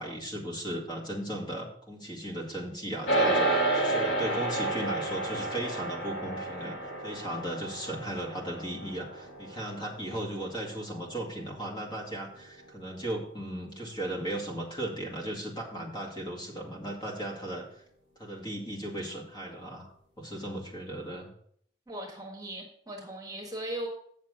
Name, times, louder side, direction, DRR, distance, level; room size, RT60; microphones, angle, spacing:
voice 1, 0.0-17.7 18.2-21.3, right 1 dB, 25° left, -1 dB, 2.1 m, -36 dB
sound 1, 3.1-12.6, right 2 dB, 85° left, 1.6 m, -31 dB
voice 2, 21.9-23.9, right 1 dB, 20° right, 1 dB, 1.5 m, -38 dB
8.1 x 6.7 x 5.0 m, 0.64 s
head